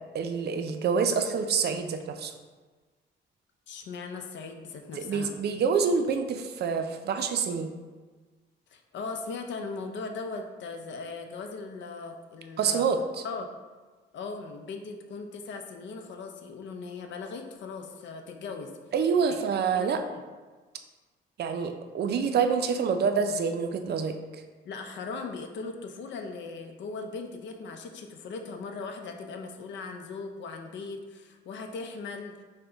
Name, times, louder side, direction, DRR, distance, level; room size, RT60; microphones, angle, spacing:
voice 1, 0.1-2.3 5.0-7.7 12.6-13.2 18.9-20.0 21.4-24.4, right 6 dB, 55° right, 6 dB, 0.4 m, -27 dB
voice 2, 3.7-5.3 8.7-12.9 13.2-13.5 14.1-18.7 19.3-19.4 19.7-20.2 24.6-32.3, left 4 dB, 65° left, 5 dB, 0.5 m, -39 dB
5.2 x 2.2 x 3.4 m, 1.3 s
cardioid pair, 90°, 20 cm